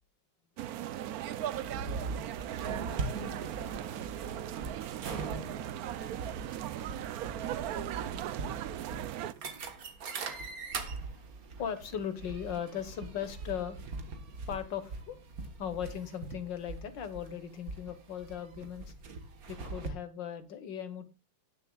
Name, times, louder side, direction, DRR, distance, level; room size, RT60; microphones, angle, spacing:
sound 1, 0.6-9.3, right 11 dB, 70° right, 0.9 m, -38 dB
sound 2, 1.5-19.9, right 3 dB, 50° right, 1.7 m, -42 dB
voice 1, 3.4-4.1 11.6-13.8 14.5-15.2 15.6-18.9 19.5-21.1, left 9 dB, 65° left, 11 dB, 1.9 m, -38 dB
18.5 x 6.7 x 2.3 m, 0.28 s
omnidirectional pair, 2.2 m